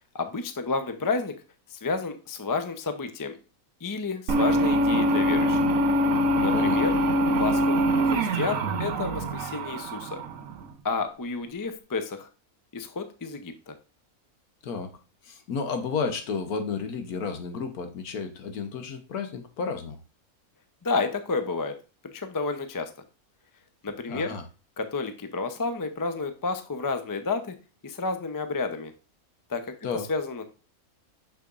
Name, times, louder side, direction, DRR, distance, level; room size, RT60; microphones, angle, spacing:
voice 1, 0.1-1.3 1.7-3.4 3.8-5.6 6.3-6.9 7.4-10.2 10.8-12.3 12.7-13.7 20.8-21.8 22.1-22.9 23.8-24.3 24.8-27.5 27.8-28.9 29.5-29.7 30.1-30.4, left 4 dB, 25° left, 8 dB, 0.4 m, -30 dB
sound 1, 4.3-10.7, equal, 70° right, 1.2 m, -24 dB
voice 2, 15.2-20.0 24.1-24.4 29.8-30.0, left 5 dB, 80° left, 6 dB, 1.6 m, -32 dB
6.8 x 6.6 x 2.5 m, 0.33 s
omnidirectional pair, 1.6 m